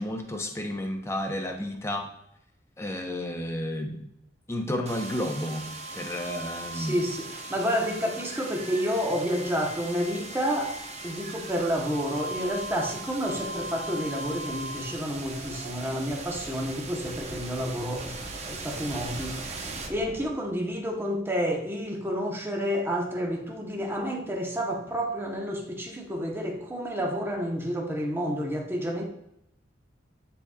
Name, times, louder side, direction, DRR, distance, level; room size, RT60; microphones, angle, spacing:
voice 1, 0.0-2.1 2.8-4.1 4.5-5.7 5.9-7.0, left 1 dB, 15° left, 3 dB, 0.8 m, -31 dB
sound 1, 4.9-20.7, right 2 dB, 35° right, 0.9 m, -38 dB
voice 2, 6.7-10.7 11.0-18.2 18.4-29.0, equal, 15° right, 0 dB, 1.1 m, -30 dB
10.0 x 4.1 x 2.4 m, 0.78 s
head